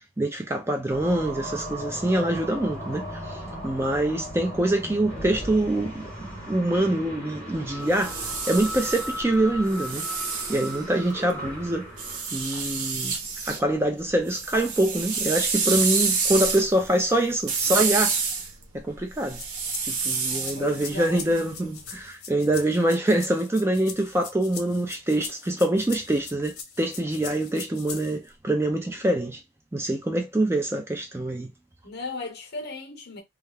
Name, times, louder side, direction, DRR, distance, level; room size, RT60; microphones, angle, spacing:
voice 1, 0.2-10.1 10.5-11.9 12.3-13.2 13.4-18.2 18.7-19.4 19.8-29.4 29.7-31.5, right 1 dB, 10° right, 0.3 m, -25 dB
sound 1, 0.9-12.9, equal, 5° left, 1.0 m, -37 dB
voice 2, 3.4-4.0 20.5-21.4 31.8-33.2, left 2 dB, 45° left, 0.8 m, -37 dB
sound 2, 7.8-11.3 12.0-13.6 14.0-21.9, right 5 dB, 90° right, 0.8 m, -29 dB
sound 3, 19.3-28.3, left 6 dB, 80° left, 0.7 m, -41 dB
2.3 x 2.2 x 3.3 m
head